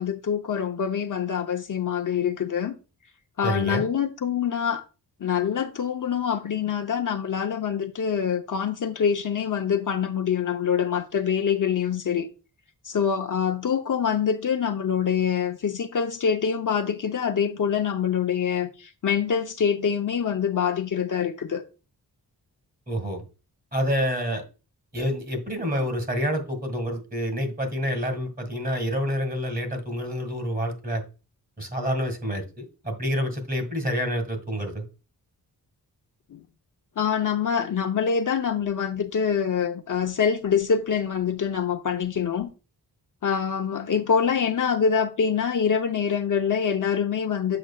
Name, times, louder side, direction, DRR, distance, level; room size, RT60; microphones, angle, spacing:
voice 1, 0.0-2.7 3.4-4.8 5.2-12.3 12.8-21.6 36.3-36.4 37.0-42.5 43.2-47.6, left 7 dB, 55° left, 0.7 m, -25 dB
voice 2, 3.4-3.8 22.9-23.2 23.7-24.4 24.9-31.0 31.6-34.8, equal, 20° right, 1.6 m, -28 dB
7.6 x 6.1 x 2.3 m
wide cardioid pair, 115°, 39 cm